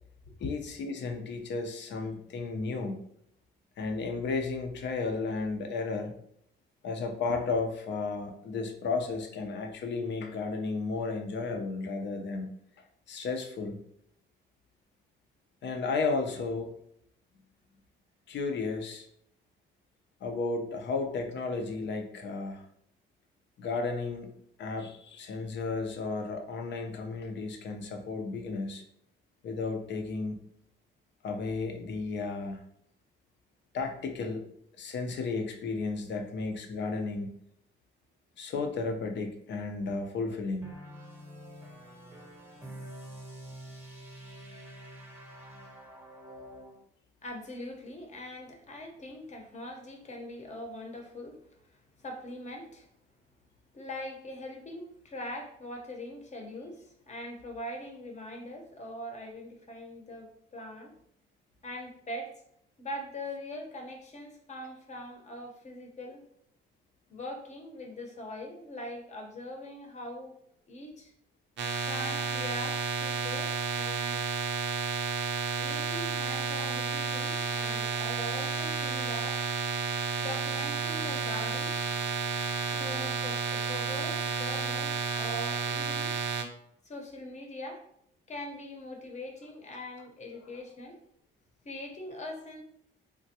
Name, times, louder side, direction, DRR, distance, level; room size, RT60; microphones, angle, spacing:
voice 1, 0.4-3.0 3.8-6.1 6.8-12.5 13.1-13.8 15.6-16.7 18.3-19.1 20.2-22.7 23.6-24.3 24.6-28.8 29.4-30.4 31.2-32.6 33.7-34.4 34.8-37.3 38.4-40.7, left 4 dB, 65° left, 4 dB, 0.6 m, -33 dB
sound 1, 40.6-46.8, right 1 dB, 10° right, 0.7 m, -47 dB
voice 2, 47.2-51.4 51.7-52.9 53.7-60.9 61.6-62.3 62.8-66.3 67.1-70.3 70.7-71.1 71.9-74.2 75.6-79.4 80.2-81.8 82.7-86.1 86.9-87.8 88.3-91.0 91.6-92.6, left 1 dB, 35° left, 2 dB, 0.8 m, -42 dB
sound 2, 71.6-86.4, right 5 dB, 65° right, 0.5 m, -31 dB
3.3 x 2.2 x 2.7 m, 0.71 s
cardioid pair, 90°, 20 cm